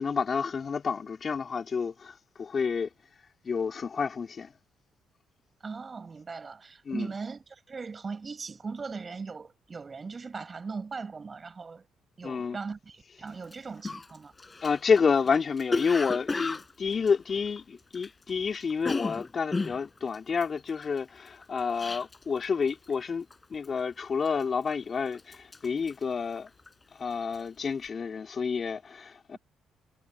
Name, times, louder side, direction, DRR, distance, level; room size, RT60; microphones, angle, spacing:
voice 1, 0.0-2.9 3.4-4.5 6.9-7.1 12.2-12.6 14.6-26.5 26.9-29.4, left 5 dB, 45° left, 3.3 m, -29 dB
voice 2, 5.6-11.9 12.2-14.3, right 4 dB, 35° right, 7.1 m, -39 dB
Cough, 13.4-13.5 13.8-18.3 18.6-22.4 22.7-23.0 23.3-23.8 24.3-24.8 25.1-26.8 27.1-27.5, left 3 dB, 25° left, 5.8 m, -34 dB
supercardioid pair, 65°, 0 cm